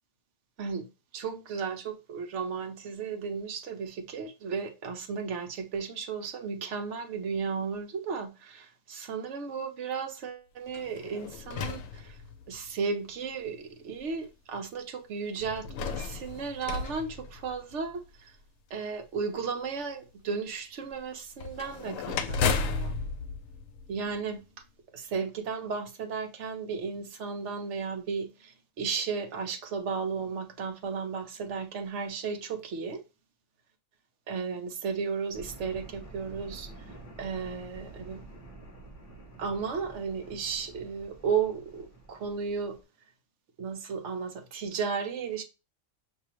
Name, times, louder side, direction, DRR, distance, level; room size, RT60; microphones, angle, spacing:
voice 1, 1.1-12.2 12.5-18.3 18.7-23.0 23.9-24.4 24.9-33.0 34.3-36.7 37.2-38.2 39.4-42.8 43.6-45.4, right 5 dB, 65° right, 1.0 m, -34 dB
sound 1, 10.7-12.7 13.5-13.6 15.4-18.0 21.4-24.4, left 5 dB, 80° left, 1.0 m, -34 dB
sound 2, 35.3-42.8, right 2 dB, 25° left, 1.2 m, -48 dB
6.0 x 2.8 x 2.9 m
omnidirectional pair, 1.4 m